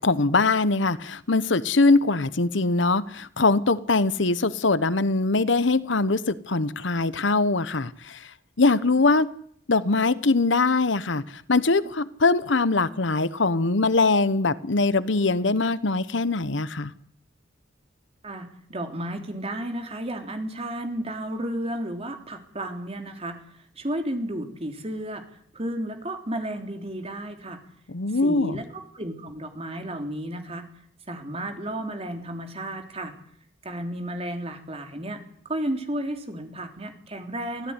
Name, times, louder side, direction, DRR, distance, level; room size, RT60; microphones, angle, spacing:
voice 1, 0.0-8.3 8.6-9.3 9.7-16.9 27.9-28.6, left 3 dB, 70° left, 16 dB, 1.1 m, -22 dB
voice 2, 18.2-23.4 23.8-25.2 25.5-27.6 28.2-30.7 31.1-33.1 33.6-37.7, right 1 dB, 30° right, 5 dB, 3.4 m, -33 dB
24.5 x 16.5 x 9.8 m, 0.65 s
head